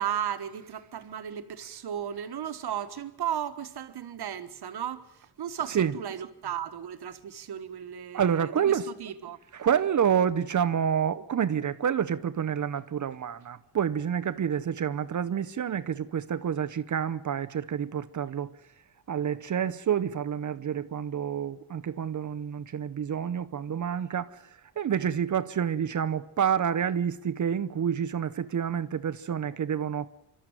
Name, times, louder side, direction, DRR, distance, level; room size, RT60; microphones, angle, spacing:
voice 1, 0.0-5.0 5.4-9.4, right 9 dB, 80° right, 1.5 m, -35 dB
voice 2, 8.1-8.9 9.5-18.5 19.1-24.4 24.8-30.1, right 8 dB, 50° right, 0.7 m, -28 dB
27.5 x 13.0 x 8.9 m
wide cardioid pair, 145°, 38 cm